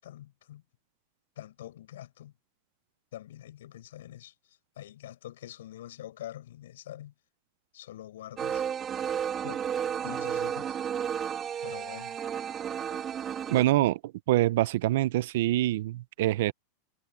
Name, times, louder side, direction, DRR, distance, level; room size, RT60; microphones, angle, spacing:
voice 1, 0.0-0.6 1.4-2.3 3.1-4.3 4.8-7.1 7.7-8.6 9.4-9.6 10.0-10.8 11.6-12.2 13.8-13.9, left 13 dB, 85° left, 7.3 m, -45 dB
sound 1, 8.4-13.6, right 8 dB, 25° right, 2.6 m, -32 dB
voice 2, 13.5-14.0 14.3-16.5, right 15 dB, 65° right, 0.7 m, -25 dB
supercardioid pair, 150°, 0 cm